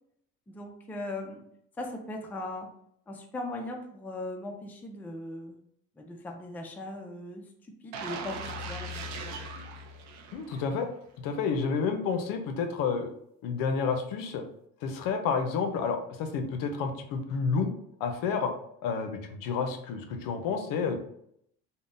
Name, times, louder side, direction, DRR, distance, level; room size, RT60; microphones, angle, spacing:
voice 1, 0.5-1.4 1.8-2.7 3.1-5.6 6.0-7.5 7.8-8.9 9.2-9.4, left 2 dB, 5° left, 2 dB, 0.3 m, -39 dB
sound 1, 7.9-10.9 11.3-11.4, right 2 dB, 55° right, 0.5 m, -39 dB
voice 2, 10.3-10.9 11.2-13.1 13.4-14.4 14.8-17.7 18.0-18.5 18.8-21.0, left 5 dB, 80° left, 6 dB, 0.6 m, -30 dB
3.6 x 2.1 x 2.5 m, 0.71 s
cardioid pair, 120°, 33 cm